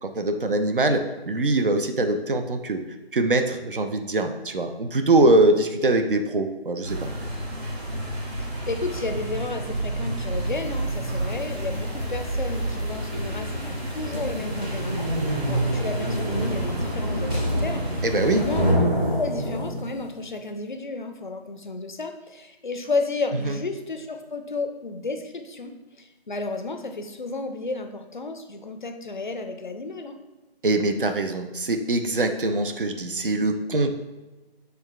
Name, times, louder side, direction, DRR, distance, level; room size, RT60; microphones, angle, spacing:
voice 1, 0.0-2.8 3.1-7.1 18.0-18.5 23.4-23.6 30.6-33.9, right 2 dB, 55° right, 6 dB, 0.5 m, -23 dB
sound 1, 6.8-18.7, right 1 dB, 80° right, 1.5 m, -30 dB
voice 2, 8.7-15.1 15.5-18.8 19.1-30.2, left 3 dB, 50° left, 6 dB, 0.5 m, -32 dB
sound 2, 10.7-20.1, equal, 15° right, 0.7 m, -28 dB
6.7 x 3.3 x 2.3 m, 1.1 s
figure-of-eight pair, 160°, 31 cm